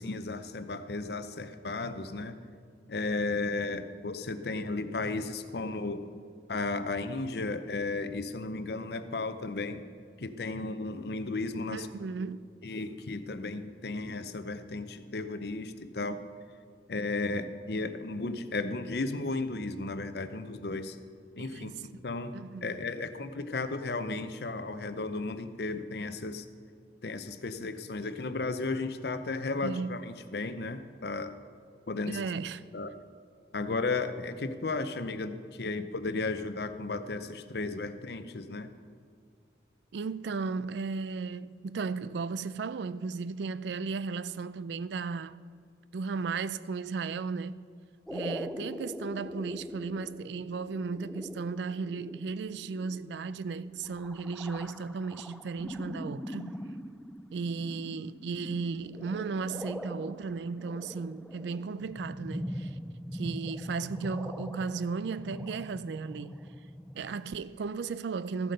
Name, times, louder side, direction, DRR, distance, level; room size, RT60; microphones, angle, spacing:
voice 1, 0.0-2.4 2.9-6.0 6.5-9.9 10.2-11.9 12.6-16.2 16.9-21.0 21.4-26.5 27.0-31.4 31.9-32.2 32.7-32.9 33.5-38.7, left 3 dB, 65° left, 0.6 m, -34 dB
voice 2, 11.7-12.5 21.4-21.8 22.3-22.8 29.6-30.0 32.1-32.7 39.9-45.4 45.9-47.6 48.1-56.6 57.3-62.8 63.1-66.4 66.9-68.5, right 4 dB, 75° right, 0.4 m, -35 dB
sound 1, 48.1-67.3, equal, ahead, 0.3 m, -42 dB
14.0 x 7.7 x 5.3 m
head